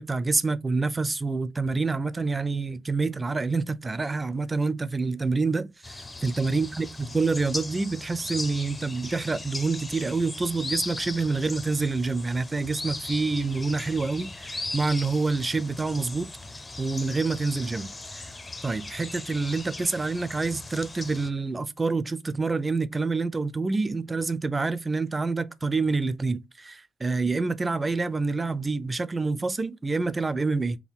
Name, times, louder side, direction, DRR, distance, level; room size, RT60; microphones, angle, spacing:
voice 1, 0.0-16.3 16.8-18.3 18.6-30.8, right 3 dB, 20° right, 0.4 m, -27 dB
sound 1, 5.8-21.3, left 2 dB, 20° left, 0.6 m, -38 dB
3.6 x 2.2 x 4.0 m
cardioid pair, 90°, 0 cm